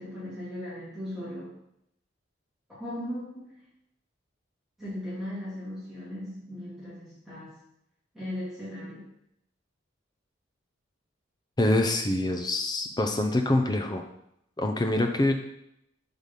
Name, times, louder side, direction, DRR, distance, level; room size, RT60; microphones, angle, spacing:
voice 1, 0.0-1.5 2.8-3.5 4.8-7.5 8.1-9.0, left 1 dB, ahead, -11 dB, 2.3 m, -37 dB
voice 2, 11.6-14.0 14.6-15.3, left 1 dB, 20° left, 5 dB, 0.5 m, -25 dB
4.8 x 4.1 x 5.2 m, 0.79 s
head